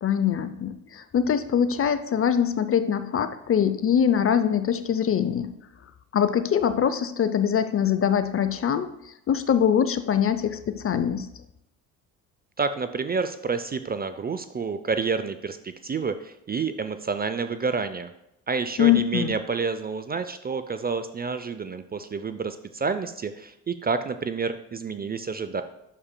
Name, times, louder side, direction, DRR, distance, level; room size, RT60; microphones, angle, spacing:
voice 1, 0.0-5.5 6.1-8.9 9.3-11.3 18.8-19.3, left 8 dB, 35° left, 12 dB, 0.5 m, -23 dB
voice 2, 12.6-18.1 18.5-25.6, right 5 dB, 25° right, 10 dB, 0.4 m, -29 dB
8.9 x 6.4 x 2.2 m, 0.85 s
hypercardioid pair, 55°, 41 cm